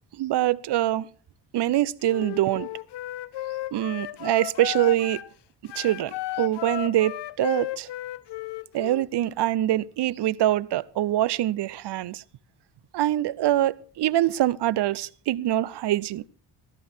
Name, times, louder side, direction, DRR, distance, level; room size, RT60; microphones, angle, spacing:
voice 1, 0.2-1.1 1.5-2.7 3.7-5.2 5.6-7.9 8.7-12.2 12.9-16.2, right 13 dB, 70° right, 0.7 m, -24 dB
Wind instrument woodwind instrument, 2.0-5.3 5.6-9.1, left 15 dB, 75° left, 0.7 m, -34 dB
15.5 x 13.5 x 4.5 m
cardioid pair, 100°, 42 cm